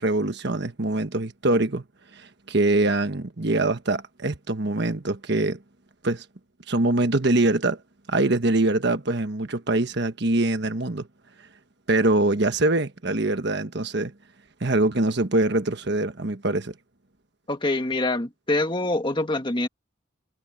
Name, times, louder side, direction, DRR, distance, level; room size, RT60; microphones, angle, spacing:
voice 1, 0.0-1.8 2.1-5.6 6.0-6.2 6.7-7.8 8.1-11.1 11.9-14.1 14.6-16.7, right 2 dB, 55° right, 1.3 m, -23 dB
voice 2, 17.5-19.7, left 2 dB, 25° left, 1.8 m, -25 dB
head